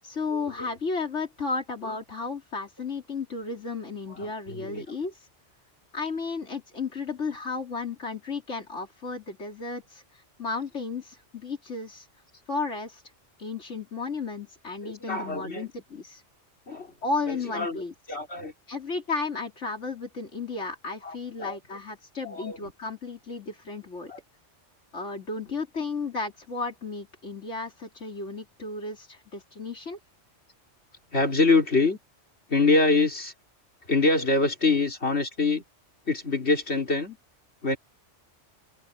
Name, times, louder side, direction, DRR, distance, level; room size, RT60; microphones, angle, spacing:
voice 1, 0.0-5.3 5.9-12.1 12.5-13.0 13.4-16.2 17.0-17.9 18.7-24.1 24.9-30.0, left 4 dB, 85° left, 3.5 m, -33 dB
voice 2, 4.1-4.8 14.8-15.6 16.7-16.9 17.3-17.8 18.1-18.5 21.0-21.6 22.2-22.7 24.1-24.2 31.1-32.0 32.5-33.3 33.9-35.6 36.1-37.2 37.6-37.8, left 3 dB, 65° left, 4.2 m, -25 dB
omnidirectional pair, 1.2 m